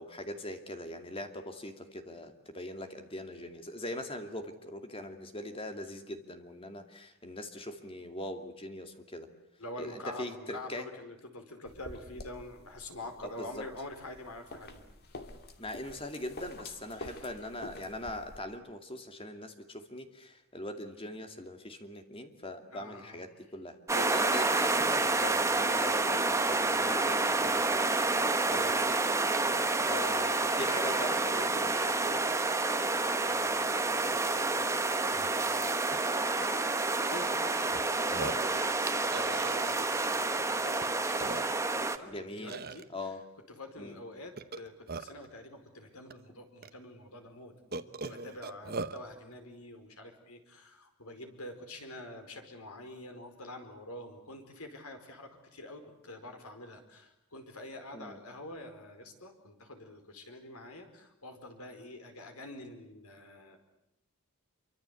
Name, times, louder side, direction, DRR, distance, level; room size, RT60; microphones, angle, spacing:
voice 1, 0.0-9.3 9.8-10.9 13.2-13.7 15.6-29.0 29.9-32.2 42.0-42.6 42.9-43.2 43.8-44.0 57.9-58.2, left 1 dB, 25° left, 6 dB, 2.5 m, -41 dB
voice 2, 9.6-15.2 16.9-17.5 22.7-23.2 28.5-28.8 29.3-29.9 33.2-35.8 36.8-41.3 41.7-43.1 43.5-63.6, left 1 dB, 80° left, 6 dB, 4.8 m, -47 dB
sound 1, 11.7-18.4, left 2 dB, 45° left, 2.5 m, -48 dB
sound 2, 23.9-42.0, right 3 dB, 15° right, 1.1 m, -29 dB
Burping eructation, 34.6-34.7 35.1-35.3 35.9-36.0 36.4-37.1 37.7-37.8 38.1-38.5 39.1-40.1 40.8-40.9 41.2-41.8 42.5-42.8 44.4-45.3 46.1-46.2 46.6-46.7 47.7-49.0, right 4 dB, 45° right, 1.1 m, -40 dB
27.0 x 24.5 x 8.3 m, 0.85 s
head